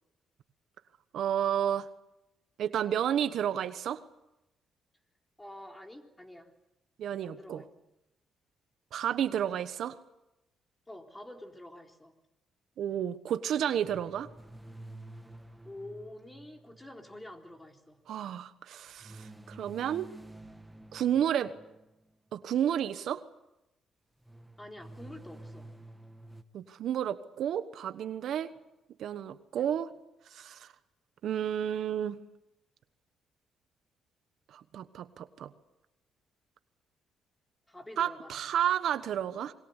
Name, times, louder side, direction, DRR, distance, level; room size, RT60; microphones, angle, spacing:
voice 1, 1.1-1.9 2.6-4.0 7.0-7.6 8.9-10.0 12.8-14.3 18.1-20.1 20.9-21.5 22.3-23.2 26.5-28.5 29.0-29.9 30.3-30.7 31.2-32.2 34.5-35.5 38.0-39.5, right 9 dB, 70° right, 11 dB, 1.2 m, -31 dB
voice 2, 5.4-6.5 7.2-7.7 10.9-12.1 15.6-18.0 24.6-25.7 29.6-29.8 37.7-38.5, left 1 dB, 10° left, 3 dB, 3.7 m, -47 dB
sound 1, 13.8-17.4 19.0-22.1 24.2-26.4, right 2 dB, 5° right, 1.7 m, -50 dB
26.0 x 22.0 x 8.2 m, 0.94 s
cardioid pair, 90°, 0 cm